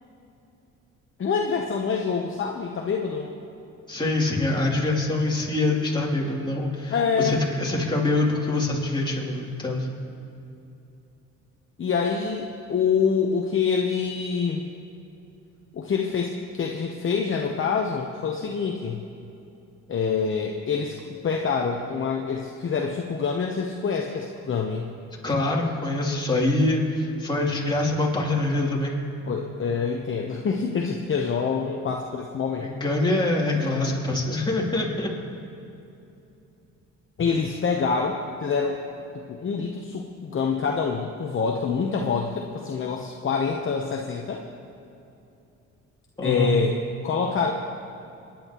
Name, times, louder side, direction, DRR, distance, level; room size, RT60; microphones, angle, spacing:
voice 1, 1.2-3.3 6.9-7.4 11.8-14.6 15.7-19.0 19.9-24.9 29.3-32.7 33.5-33.7 37.2-38.8 39.3-44.4 46.2-46.8 47.0-47.5, left 5 dB, 40° left, 1 dB, 0.9 m, -26 dB
voice 2, 3.9-9.9 25.2-29.0 32.6-35.1 46.2-46.5, left 2 dB, 15° left, -3 dB, 2.9 m, -24 dB
23.0 x 10.5 x 3.0 m, 2.7 s
cardioid pair, 90°, 30 cm